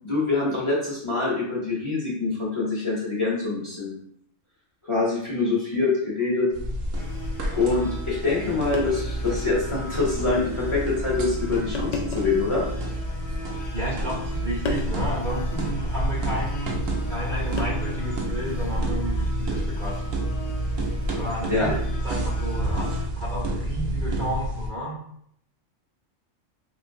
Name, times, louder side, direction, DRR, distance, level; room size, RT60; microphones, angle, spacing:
voice 1, 0.0-3.9 4.9-6.5 7.5-12.6 21.5-21.7, left 3 dB, 30° left, -6 dB, 0.7 m, -25 dB
sound 1, 6.5-24.7, right 1 dB, 80° right, 1.0 m, -29 dB
sound 2, 6.9-23.1, left 2 dB, 65° left, 0.8 m, -40 dB
sound 3, 7.0-7.2 8.3-8.4 8.7-9.2 9.8-9.9 10.8-11.0 11.7-12.5 13.3-13.9 14.6-15.0 16.5-16.7 17.6-18.2 19.7-20.0, left 2 dB, 85° left, 0.3 m, -33 dB
voice 2, 13.7-16.7 17.1-20.0 21.2-22.9 23.1-25.0, right 1 dB, 50° right, -5 dB, 0.7 m, -32 dB
3.1 x 3.0 x 2.6 m, 0.70 s
omnidirectional pair, 1.3 m